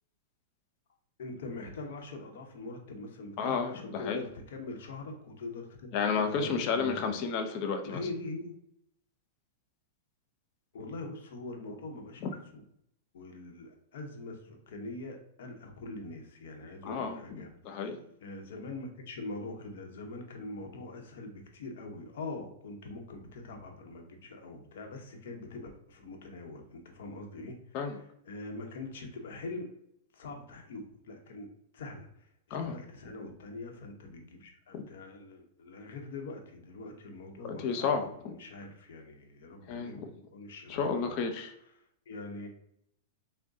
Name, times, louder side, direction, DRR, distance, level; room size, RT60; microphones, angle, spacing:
voice 1, 1.2-7.2 7.8-8.5 10.7-12.6 13.1-17.5 18.2-29.7 30.1-31.5 31.7-41.2 42.1-42.5, left 2 dB, 70° left, 3 dB, 0.9 m, -43 dB
voice 2, 3.4-4.2 5.9-8.1 12.2-12.3 16.8-18.0 27.7-28.0 32.5-32.8 34.7-34.8 37.6-38.3 39.7-40.1 40.7-41.5, left 5 dB, 45° left, 5 dB, 0.6 m, -32 dB
6.1 x 2.2 x 2.6 m, 0.73 s
hypercardioid pair, 130°, 0 cm